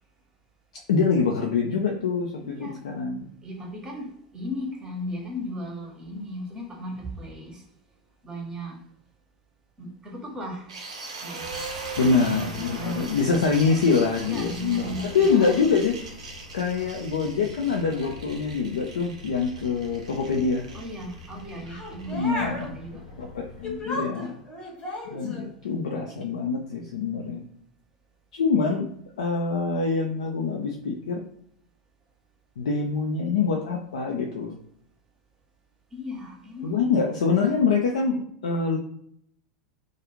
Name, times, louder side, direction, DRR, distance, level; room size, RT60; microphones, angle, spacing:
voice 1, 0.9-3.3 12.0-16.0 16.5-20.7 22.1-22.8 23.2-24.4 25.1-27.4 28.3-28.9 29.2-31.2 32.6-34.5 36.6-38.8, left 5 dB, 65° left, 1 dB, 0.4 m, -25 dB
voice 2, 2.4-2.8 3.4-7.6 8.2-8.8 9.8-10.7 11.2-11.5 12.0-13.1 14.2-15.5 20.7-23.0 24.2-24.3 35.9-36.8, equal, 20° right, 1 dB, 0.8 m, -36 dB
sound 1, 10.7-22.6, right 3 dB, 65° right, 0.6 m, -41 dB
sound 2, 11.4-23.8, left 3 dB, 85° left, 0.8 m, -44 dB
sound 3, 21.7-22.7 23.6-25.5 26.1-26.2, left 1 dB, 25° left, 0.8 m, -34 dB
2.5 x 2.3 x 2.9 m, 0.68 s
figure-of-eight pair, 85°, 4 cm